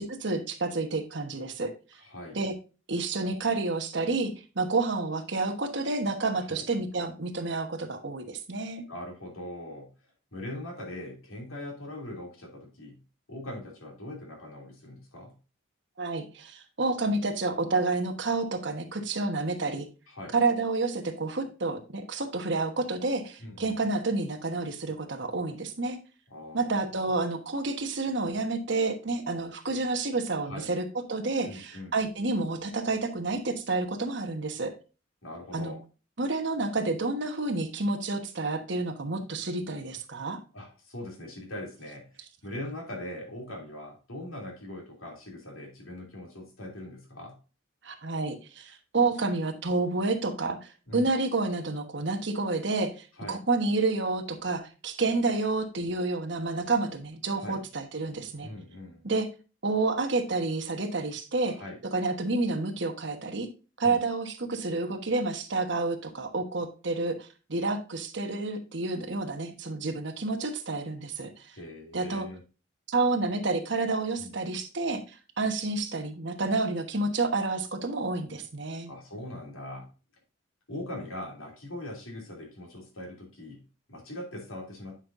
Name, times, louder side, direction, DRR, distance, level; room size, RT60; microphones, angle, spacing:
voice 1, 0.0-1.7 2.3-2.5 2.9-8.8 16.0-19.9 20.3-26.0 26.5-34.7 35.5-35.7 36.2-40.4 47.8-58.5 59.0-59.3 59.6-61.6 61.9-63.5 63.8-71.6 71.9-72.3 72.9-78.9, right 3 dB, 60° right, 6 dB, 1.2 m, -29 dB
voice 2, 2.0-2.4 6.5-6.6 8.9-9.9 10.3-13.0 13.3-15.4 20.1-20.4 23.4-23.8 26.3-27.1 30.4-30.7 31.4-31.9 35.2-35.8 40.5-47.4 50.9-51.1 53.2-53.4 57.4-57.6 58.4-59.0 61.4-61.8 63.8-64.0 71.5-72.4 74.2-74.3 78.9-79.9 80.7-85.0, left 1 dB, 90° left, 1 dB, 2.8 m, -41 dB
9.7 x 5.6 x 2.6 m, 0.32 s
head